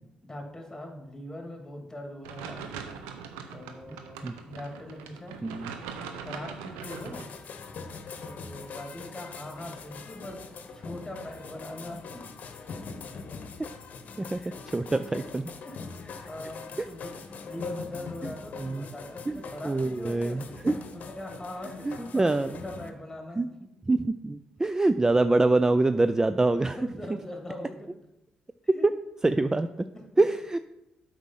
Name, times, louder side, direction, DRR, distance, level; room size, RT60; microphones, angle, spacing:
voice 1, 0.0-2.7 3.5-5.3 6.2-7.3 8.2-10.4 10.7-12.3 14.3-15.1 15.6-17.2 17.4-20.6 20.9-23.4 26.5-27.9 28.7-28.9 29.9-30.0, left 1 dB, 15° left, 2 dB, 2.5 m, -42 dB
sound 1, 2.2-7.2, right 6 dB, 85° right, 0.7 m, -41 dB
sound 2, 6.8-22.9, left 4 dB, 60° left, 0.9 m, -42 dB
voice 2, 14.7-15.4 18.6-18.9 19.3-19.4 19.6-20.8 21.9-22.5 23.4-23.5 23.9-26.8 29.2-29.9 30.2-30.6, right 2 dB, 20° right, 11 dB, 0.4 m, -25 dB
8.2 x 4.9 x 5.6 m, 0.91 s
hypercardioid pair, 45°, 3 cm